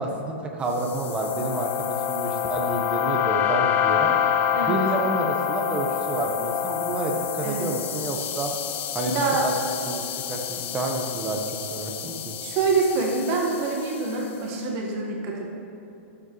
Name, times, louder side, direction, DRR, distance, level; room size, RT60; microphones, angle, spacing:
voice 1, 0.0-4.1 4.6-8.6 8.9-9.5 9.8-10.0 10.3-12.3, right 2 dB, 15° right, 1 dB, 1.1 m, -29 dB
sound 1, 0.8-14.1, left 9 dB, 25° left, 0.4 m, -27 dB
voice 2, 9.1-9.4 12.4-15.6, right 4 dB, 35° right, -2 dB, 1.6 m, -26 dB
14.5 x 7.4 x 3.1 m, 2.8 s
hypercardioid pair, 145°, 7 cm